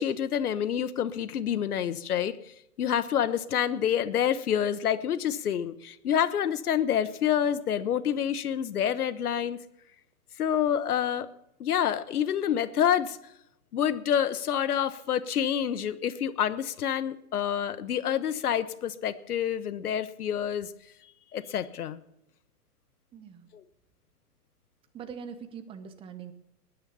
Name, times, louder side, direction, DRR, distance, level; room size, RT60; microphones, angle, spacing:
voice 1, 0.0-2.4 2.8-9.6 10.4-11.3 11.6-13.2 13.7-20.7 21.3-22.0 23.5-23.6, left 9 dB, 70° left, 15 dB, 1.2 m, -27 dB
voice 2, 23.1-23.5 24.9-26.3, right 7 dB, 10° right, 9 dB, 0.8 m, -42 dB
20.0 x 9.4 x 5.6 m, 0.79 s
hypercardioid pair, 135°, 47 cm